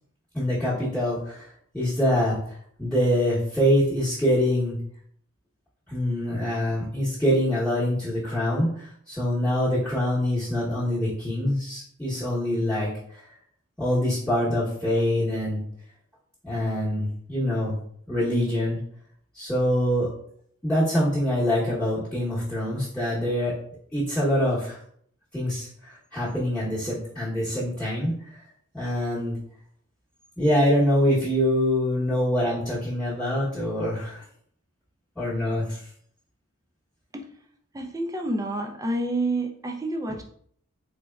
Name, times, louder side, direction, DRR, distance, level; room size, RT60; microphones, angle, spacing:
voice 1, 0.3-1.5 1.7-2.4 2.8-4.8 5.9-13.2 13.8-15.6 16.4-17.8 18.1-18.8 19.3-20.1 20.6-23.5 23.9-24.8 25.3-28.1 28.7-29.4 30.4-34.2 35.2-35.8, equal, 5° left, -9 dB, 0.9 m, -25 dB
voice 2, 37.7-40.2, right 2 dB, 15° right, 3 dB, 0.3 m, -28 dB
4.0 x 3.3 x 2.3 m, 0.64 s
head